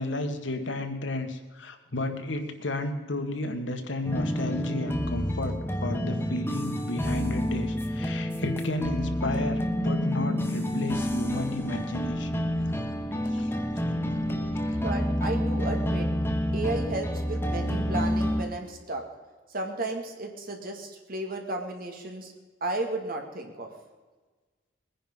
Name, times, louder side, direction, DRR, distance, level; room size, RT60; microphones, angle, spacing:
voice 1, 0.0-12.9 13.2-13.5 14.6-14.8, left 2 dB, 85° left, 6 dB, 1.8 m, -33 dB
sound 1, 4.0-18.4, equal, 15° left, 1.5 m, -29 dB
voice 2, 14.7-16.1 16.5-19.0 19.5-22.3 22.6-23.7, right 2 dB, 50° right, 3 dB, 2.5 m, -33 dB
21.0 x 10.0 x 5.6 m, 1.3 s
head